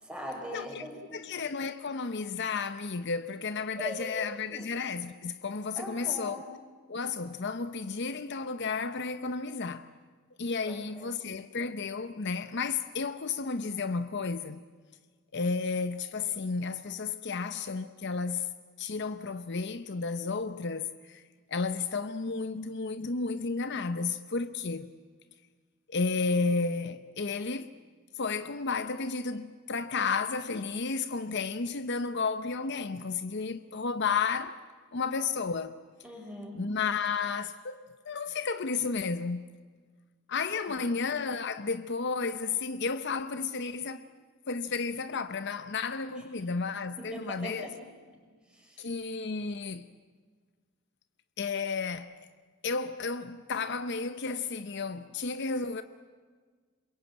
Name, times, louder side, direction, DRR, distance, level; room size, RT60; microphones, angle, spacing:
voice 1, 0.0-1.3 3.8-4.7 5.8-6.5 10.7-11.2 36.0-36.6 47.0-47.7 48.5-48.9, equal, 5° right, 5.8 m, -41 dB
voice 2, 0.5-0.8 1.1-6.4 6.9-9.9 10.4-14.6 15.3-18.5 18.8-21.2 21.5-24.9 25.9-27.7 28.1-34.6 34.9-35.8 36.6-39.5 40.3-44.1 44.5-47.7 48.8-49.9 51.4-52.1 52.6-55.8, left 4 dB, 50° left, 0.7 m, -32 dB
27.5 x 22.5 x 8.8 m
head